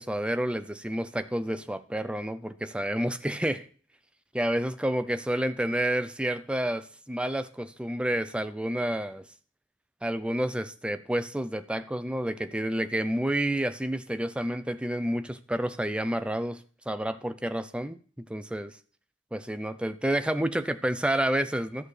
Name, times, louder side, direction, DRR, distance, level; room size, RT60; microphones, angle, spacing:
voice 1, 0.0-3.7 4.3-9.2 10.0-16.6 16.9-18.0 18.3-18.7 19.3-21.9, right 1 dB, 5° right, 11 dB, 0.5 m, -29 dB
13.0 x 6.5 x 3.3 m, 0.42 s
head